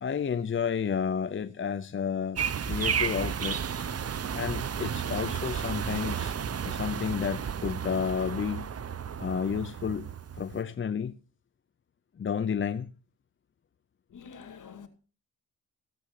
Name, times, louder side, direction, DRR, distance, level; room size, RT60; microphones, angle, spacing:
voice 1, 0.0-3.6 4.3-6.3 6.6-8.7 9.2-10.1 10.3-11.1 12.2-12.9, left 7 dB, 35° left, 0.7 m, -31 dB
sound 1, 2.4-10.6, right 7 dB, 45° right, 0.9 m, -33 dB
voice 2, 14.1-14.9, left 6 dB, 60° left, 2.3 m, -46 dB
16.0 x 7.8 x 5.8 m
cardioid pair, 70°, 35 cm